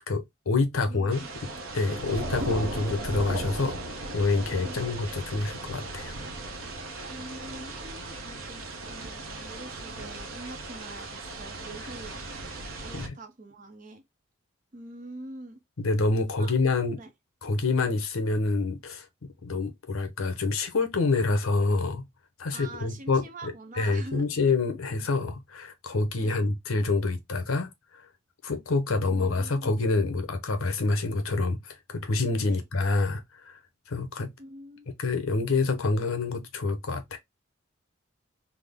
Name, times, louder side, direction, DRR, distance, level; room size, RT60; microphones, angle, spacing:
voice 1, 0.1-1.2 1.7-3.8 4.1-6.2 12.9-13.1 15.8-17.0 17.4-19.0 19.4-22.0 22.4-27.7 28.4-33.6 33.9-34.3 34.9-37.2, left 3 dB, 80° left, 0.7 m, -27 dB
voice 2, 0.8-1.3 4.6-4.9 7.1-12.2 12.8-14.0 14.7-15.6 16.4-16.5 17.0-17.1 22.5-24.2 26.2-26.4 29.0-29.7 32.4-32.6 34.4-34.9, right 2 dB, 40° right, 0.6 m, -45 dB
sound 1, 1.1-13.1, right 2 dB, 75° right, 0.7 m, -37 dB
3.5 x 2.0 x 3.5 m
head